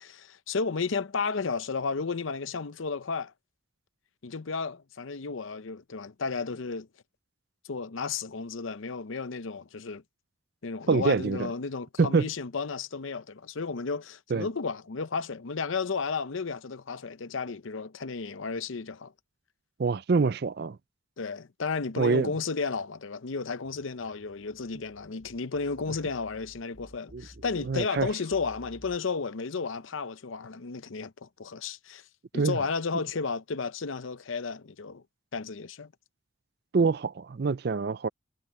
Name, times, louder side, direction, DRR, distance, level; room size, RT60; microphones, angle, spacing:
voice 1, 0.0-3.3 4.2-6.9 7.6-10.0 10.6-19.1 21.2-32.0 32.3-35.0 35.3-35.9, left 4 dB, 75° left, 0.7 m, -33 dB
voice 2, 10.9-11.5 12.0-12.3 14.3-14.5 19.8-20.8 22.0-22.3 27.1-27.3 27.6-28.1 32.3-32.6 36.7-38.1, right 4 dB, 50° right, 0.4 m, -25 dB
sound 1, 23.6-29.0, equal, 10° right, 0.9 m, -53 dB
head